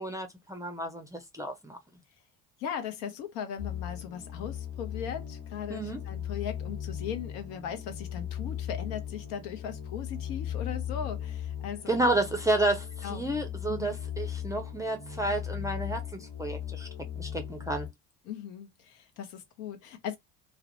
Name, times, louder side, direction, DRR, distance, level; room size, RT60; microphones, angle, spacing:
voice 1, 0.0-1.8 5.7-6.0 11.9-16.0 16.4-16.9 17.2-17.9, right 2 dB, 5° right, 0.5 m, -30 dB
voice 2, 2.6-12.0 13.0-13.3 13.7-13.9 18.2-20.2, left 8 dB, 70° left, 0.9 m, -38 dB
sound 1, 3.6-17.9, left 9 dB, 45° left, 1.2 m, -38 dB
2.4 x 2.1 x 2.9 m
hypercardioid pair, 65°, 49 cm